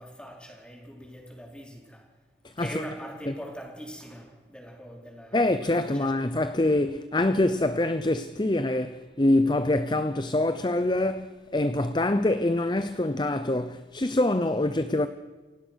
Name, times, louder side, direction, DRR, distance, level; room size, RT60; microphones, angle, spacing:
voice 1, 0.0-2.1 2.6-6.3, equal, 5° left, 4.5 m, -42 dB
voice 2, 5.3-15.1, left 1 dB, 25° left, 0.7 m, -25 dB
28.5 x 17.0 x 6.4 m
head